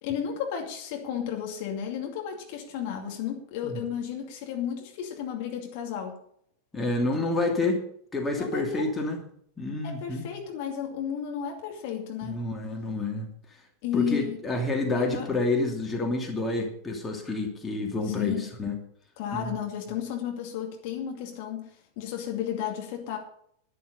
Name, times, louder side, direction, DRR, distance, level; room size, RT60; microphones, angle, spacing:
voice 1, 0.0-6.2 8.4-8.9 9.8-12.4 13.8-14.4 14.9-15.3 18.1-18.5 19.2-23.2, left 9 dB, 50° left, 2 dB, 2.4 m, -33 dB
voice 2, 6.7-7.8 8.1-9.2 9.6-10.3 12.2-13.3 13.9-18.8 19.4-19.5, left 2 dB, 15° left, 1 dB, 2.6 m, -28 dB
11.5 x 11.0 x 5.5 m, 0.67 s
figure-of-eight pair, 90°, 0 cm